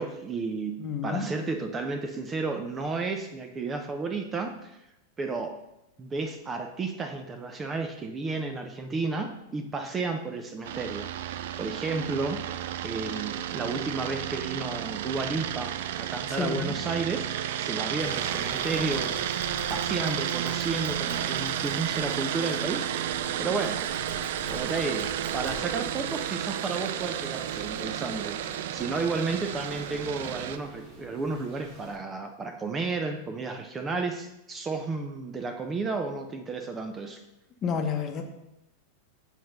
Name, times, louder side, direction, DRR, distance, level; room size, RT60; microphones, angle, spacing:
voice 1, 0.0-0.7 1.0-4.9 5.2-5.6 6.0-19.2 19.7-23.8 24.5-28.4 28.7-37.2, right 3 dB, 20° right, 5 dB, 0.7 m, -32 dB
voice 2, 0.8-1.3 16.4-16.7 37.6-38.2, left 6 dB, 30° left, 4 dB, 1.0 m, -29 dB
sound 1, 10.6-30.6, right 11 dB, 55° right, 0.4 m, -32 dB
sound 2, 18.0-32.0, right 1 dB, 35° right, 1.6 m, -45 dB
Typing, 18.5-22.7 23.4-25.6, right 2 dB, 70° right, 1.1 m, -45 dB
7.5 x 4.5 x 5.3 m, 0.88 s
figure-of-eight pair, 90°, 0 cm